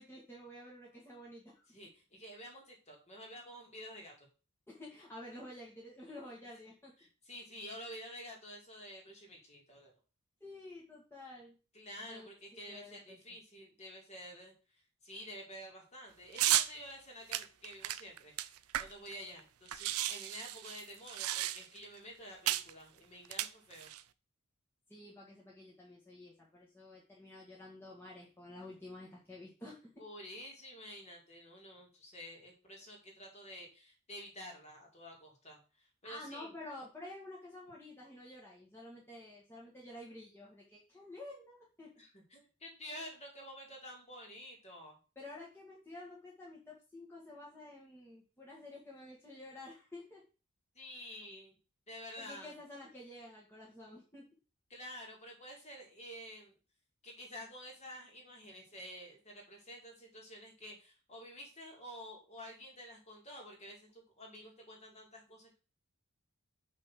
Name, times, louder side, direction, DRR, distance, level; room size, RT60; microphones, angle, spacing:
voice 1, 0.0-1.6 4.7-6.9 10.4-11.6 12.1-13.2 24.9-29.9 36.0-41.9 45.2-50.2 51.9-54.3, left 1 dB, 10° left, -4 dB, 1.9 m, -50 dB
voice 2, 1.7-4.3 6.1-6.2 7.0-9.9 11.7-14.5 15.0-23.9 30.0-36.5 42.0-45.0 50.7-51.6 51.9-52.5 54.7-56.5 57.0-65.6, equal, 30° left, 0 dB, 2.9 m, -50 dB
sound 1, 16.4-16.7 17.3-19.1 19.4-19.5 19.7-21.8 22.5-22.7 23.2-24.0, right 14 dB, 90° right, 0.6 m, -33 dB
6.4 x 6.1 x 5.9 m, 0.34 s
head